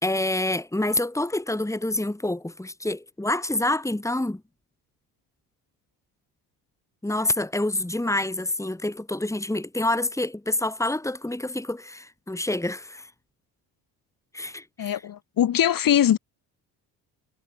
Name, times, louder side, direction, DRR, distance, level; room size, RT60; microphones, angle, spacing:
voice 1, 0.0-4.4 7.0-13.1 14.3-15.0, left 1 dB, 5° left, 3.5 m, -27 dB
voice 2, 14.8-16.2, left 10 dB, 50° left, 1.8 m, -21 dB
supercardioid pair, 65°, 42 cm